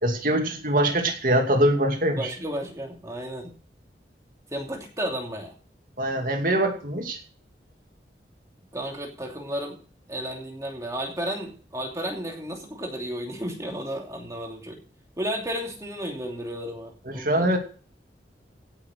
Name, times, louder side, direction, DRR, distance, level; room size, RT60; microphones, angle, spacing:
voice 1, 0.0-2.3 6.0-7.2 17.1-17.6, right 1 dB, 50° right, 3 dB, 2.5 m, -23 dB
voice 2, 2.2-3.5 4.5-5.5 8.7-9.8 10.1-14.8 15.2-17.6, equal, 20° right, 0 dB, 2.8 m, -33 dB
16.5 x 6.8 x 6.4 m, 0.41 s
head